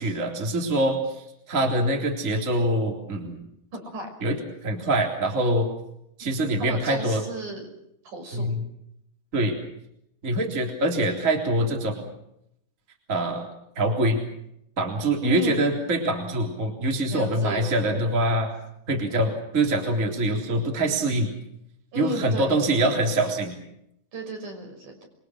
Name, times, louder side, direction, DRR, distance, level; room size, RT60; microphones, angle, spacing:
voice 1, 0.0-3.4 4.2-5.7 6.2-7.2 8.3-8.6 9.3-9.6 10.2-12.1 13.1-13.5 13.8-14.2 14.8-18.5 18.9-21.3 22.0-23.6, right 1 dB, 20° right, 1 dB, 3.6 m, -24 dB
voice 2, 3.7-4.1 6.2-6.3 6.6-7.6 8.0-8.5 15.2-15.6 17.1-17.8 19.1-19.3 21.9-22.5 24.1-25.1, equal, 55° right, 3 dB, 7.6 m, -34 dB
28.0 x 23.0 x 6.4 m, 0.78 s
omnidirectional pair, 4.3 m